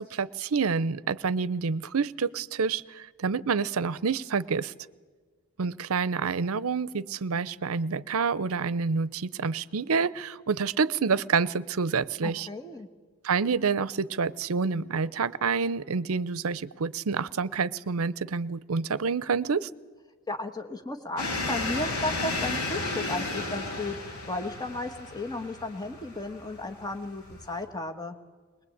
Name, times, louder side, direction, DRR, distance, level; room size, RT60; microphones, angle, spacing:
voice 1, 0.0-4.7 5.6-12.5 13.2-19.7, right 5 dB, 75° right, 19 dB, 0.6 m, -28 dB
voice 2, 12.2-12.9 20.3-28.2, left 2 dB, 20° left, 6 dB, 1.3 m, -34 dB
sound 1, 21.2-27.6, left 2 dB, 85° left, 4.9 m, -33 dB
21.5 x 21.0 x 8.7 m, 1.4 s
head